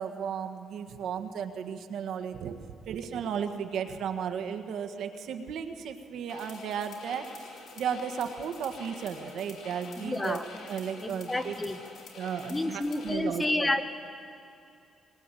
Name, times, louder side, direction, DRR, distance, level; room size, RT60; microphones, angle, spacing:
voice 1, 0.0-2.6 2.9-7.3 7.7-11.5 12.2-13.7, right 7 dB, 75° right, 7 dB, 1.5 m, -34 dB
sound 1, 6.3-13.1, left 4 dB, 70° left, 4.2 m, -47 dB
voice 2, 10.0-10.4 11.0-11.8 12.5-13.8, left 1 dB, 15° left, 8 dB, 1.2 m, -30 dB
21.5 x 21.0 x 9.1 m, 2.5 s
cardioid pair, 135°, 0 cm